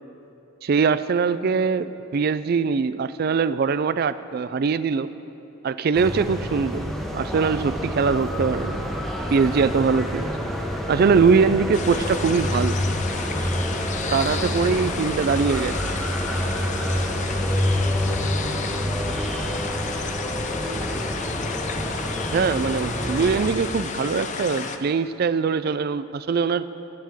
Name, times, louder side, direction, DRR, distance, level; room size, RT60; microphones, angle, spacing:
voice 1, 0.6-5.1 5.6-6.8 7.1-8.8 9.3-10.3 10.9-12.8 14.1-15.9 22.3-26.6, right 5 dB, 45° right, 14 dB, 0.3 m, -22 dB
sound 1, 5.9-23.5, equal, ahead, 0.8 m, -27 dB
sound 2, 11.7-24.8, left 5 dB, 35° left, 0.5 m, -32 dB
voice 2, 14.0-15.0 16.2-19.6, equal, 85° right, -7 dB, 2.1 m, -41 dB
16.5 x 11.5 x 3.6 m, 2.9 s
head